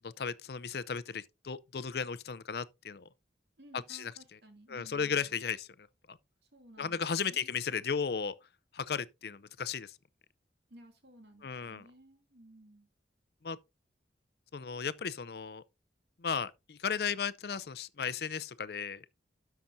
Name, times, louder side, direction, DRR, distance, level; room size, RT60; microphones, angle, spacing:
voice 1, 0.2-3.0 3.9-4.1 4.7-5.7 6.1-6.2 6.8-8.3 8.7-9.9 11.4-11.8 13.4-13.6 14.5-15.6 16.2-19.0, left 6 dB, 60° left, 0.5 m, -35 dB
voice 2, 3.6-5.4 6.4-7.6 10.7-12.9, right 1 dB, 70° right, 2.4 m, -56 dB
12.5 x 5.8 x 2.6 m
head